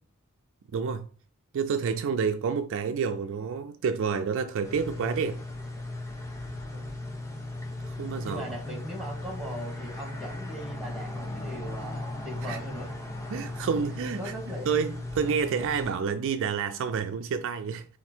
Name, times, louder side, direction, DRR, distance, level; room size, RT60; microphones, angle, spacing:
voice 1, 0.7-1.1 1.5-5.4 7.8-8.5 12.5-12.6 13.3-14.3 14.7-17.9, right 6 dB, 60° right, 0.3 m, -29 dB
sound 1, 4.6-15.9, left 2 dB, 15° left, 0.8 m, -37 dB
voice 2, 8.2-12.9 13.6-13.7 14.2-14.7, right 1 dB, ahead, 1.3 m, -39 dB
4.3 x 2.5 x 4.3 m
head